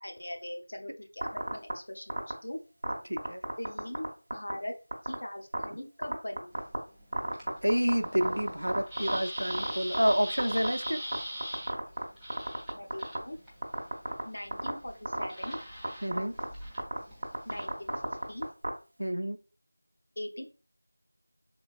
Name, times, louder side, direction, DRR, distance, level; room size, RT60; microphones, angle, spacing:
voice 1, 0.0-2.6 3.6-4.1 4.3-4.7 5.0-6.6 12.4-13.4 14.2-15.6 17.5-17.9 18.3-18.5 20.2-20.4, left 1 dB, 55° left, 3 dB, 0.6 m, -41 dB
sound 1, 1.2-1.7 2.1-2.3 2.8-4.1 4.3-4.5 4.9-5.1 5.5-5.6 6.0-6.8 7.1-10.1 10.4-11.2 11.4-12.0 12.3-13.2 13.6-14.2 14.5-14.7 15.1-15.5 15.8-16.4 16.8-17.0 17.2-18.7, right 1 dB, 40° right, 0.7 m, -30 dB
voice 2, 3.1-3.4 7.6-11.0 16.0-16.4 19.0-19.4, equal, 85° right, 9 dB, 0.4 m, -29 dB
sound 2, 6.5-18.5, equal, ahead, 0.4 m, -43 dB
3.6 x 2.5 x 2.4 m, 0.34 s
figure-of-eight pair, 175°, 0 cm